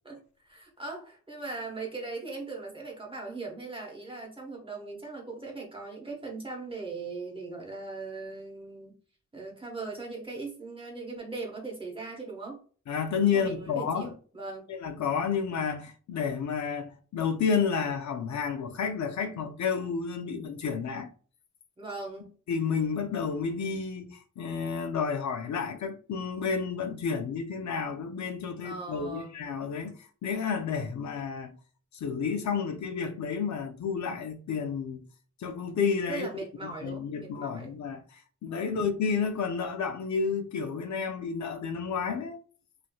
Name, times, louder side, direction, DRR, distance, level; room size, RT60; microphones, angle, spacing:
voice 1, 0.0-9.0 9.3-12.6 13.3-14.7 21.8-22.3 28.6-29.4 36.1-37.8, right 3 dB, 15° right, 0.9 m, -39 dB
voice 2, 12.9-14.2 14.7-21.1 22.5-31.6 31.9-35.1 35.4-36.3 36.6-42.4, left 6 dB, 65° left, 0.5 m, -31 dB
3.0 x 2.7 x 2.2 m
wide cardioid pair, 130°, 31 cm